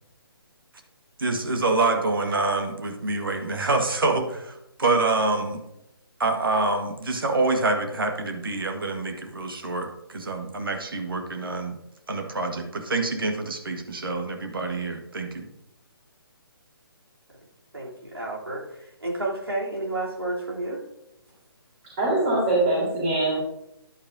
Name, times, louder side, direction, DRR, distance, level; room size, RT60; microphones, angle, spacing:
voice 1, 1.2-5.6 6.2-11.8 12.1-15.5, right 3 dB, 65° right, 5 dB, 1.5 m, -26 dB
voice 2, 17.7-20.8, right 2 dB, 80° right, -4 dB, 3.2 m, -31 dB
voice 3, 22.0-23.4, right 2 dB, 25° right, -7 dB, 3.3 m, -22 dB
10.5 x 8.5 x 2.7 m, 0.85 s
figure-of-eight pair, 140°, 13 cm